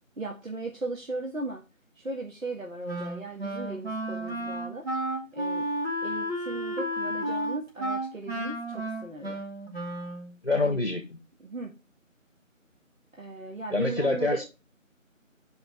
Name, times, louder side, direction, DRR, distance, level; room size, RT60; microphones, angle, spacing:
voice 1, 0.2-1.6 2.0-4.9 5.3-5.7 6.0-9.4 10.5-10.8 11.4-11.8 13.2-14.4, right 2 dB, 80° right, -1 dB, 1.7 m, -37 dB
Wind instrument woodwind instrument, 2.9-10.3, right 1 dB, 50° right, 2.4 m, -32 dB
voice 2, 10.4-11.2 13.7-14.4, left 2 dB, 45° left, 6 dB, 1.0 m, -26 dB
9.7 x 5.0 x 3.2 m, 0.27 s
figure-of-eight pair, 175°, 40 cm